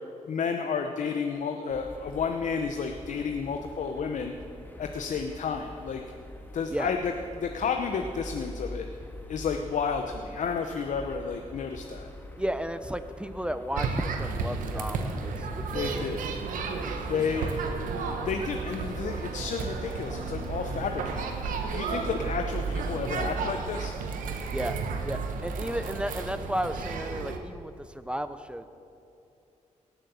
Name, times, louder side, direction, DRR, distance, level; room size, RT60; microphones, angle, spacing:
voice 1, 0.3-4.3 4.8-6.0 6.5-7.1 7.4-8.9 9.3-12.1 15.7-16.2 17.1-17.6 17.9-24.0, left 6 dB, 70° left, 5 dB, 0.8 m, -31 dB
sound 1, 1.7-18.5, left 1 dB, 15° left, 1.6 m, -45 dB
voice 2, 12.4-17.2 24.5-24.8 25.0-28.7, equal, 10° right, 11 dB, 0.6 m, -34 dB
sound 2, 13.8-27.4, right 4 dB, 90° right, 1.1 m, -32 dB
17.5 x 7.6 x 7.0 m, 2.7 s
cardioid pair, 70°, 13 cm